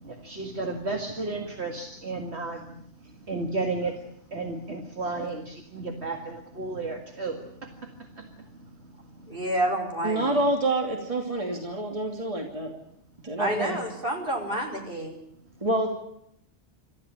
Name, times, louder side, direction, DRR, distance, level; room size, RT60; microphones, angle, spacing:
voice 1, 0.0-2.6 3.3-4.0 4.3-7.7 8.2-8.3, right 3 dB, 65° right, 3 dB, 2.3 m, -33 dB
voice 2, 9.3-10.4 13.4-15.1, right 1 dB, 50° right, 2 dB, 5.6 m, -29 dB
voice 3, 10.0-12.7 13.2-13.8 15.6-15.9, right 1 dB, 30° right, 2 dB, 3.0 m, -27 dB
27.0 x 14.0 x 10.0 m, 0.73 s
omnidirectional pair, 1.2 m